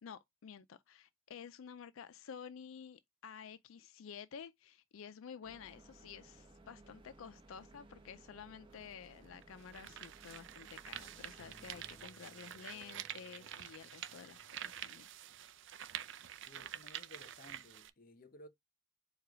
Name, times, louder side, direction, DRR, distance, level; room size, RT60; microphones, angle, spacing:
voice 1, 0.0-15.1, left 7 dB, 75° left, 0.4 m, -51 dB
sound 1, 5.4-12.0, right 2 dB, 25° right, 0.8 m, -60 dB
sound 2, 8.7-8.8 9.4-17.9, right 10 dB, 60° right, 0.5 m, -48 dB
sound 3, 11.4-14.9, left 1 dB, ahead, 1.7 m, -65 dB
voice 2, 16.5-18.5, left 1 dB, 40° left, 0.7 m, -57 dB
4.8 x 2.3 x 4.6 m
head